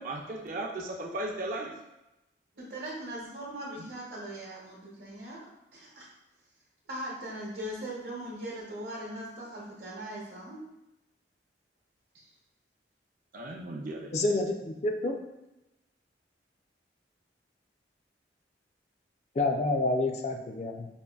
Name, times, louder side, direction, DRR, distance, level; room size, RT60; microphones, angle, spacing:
voice 1, 0.0-1.7 3.8-3.9 13.3-14.1, right 2 dB, 45° right, 0 dB, 0.4 m, -36 dB
voice 2, 2.6-5.4 5.7-6.1 6.9-10.6, right 1 dB, 75° right, -6 dB, 0.9 m, -40 dB
voice 3, 14.1-15.1 19.4-20.9, left 2 dB, 40° left, 3 dB, 0.4 m, -28 dB
5.2 x 2.5 x 2.3 m, 0.93 s
head